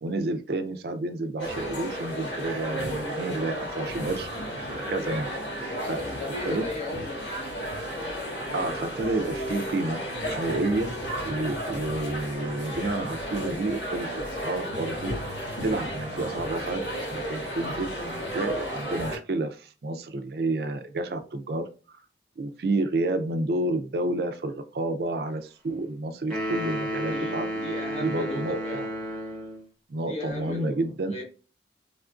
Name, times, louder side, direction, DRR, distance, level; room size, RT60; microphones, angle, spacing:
voice 1, 0.0-4.3 4.7-5.5 5.9-6.0 6.5-6.6 8.5-10.9 11.2-14.1 14.4-15.1 15.6-16.8 17.1-17.9 18.3-21.6 22.4-27.5 28.0-28.9 29.9-31.1, right 2 dB, 60° right, 0.4 m, -30 dB
sound 1, 1.4-19.2, equal, 90° left, 1.4 m, -33 dB
voice 2, 5.6-7.3 27.1-29.0 29.9-30.8 31.0-31.2, left 2 dB, 35° left, 0.9 m, -36 dB
sound 2, 26.3-29.7, equal, 5° left, 1.0 m, -32 dB
3.5 x 2.5 x 2.3 m
head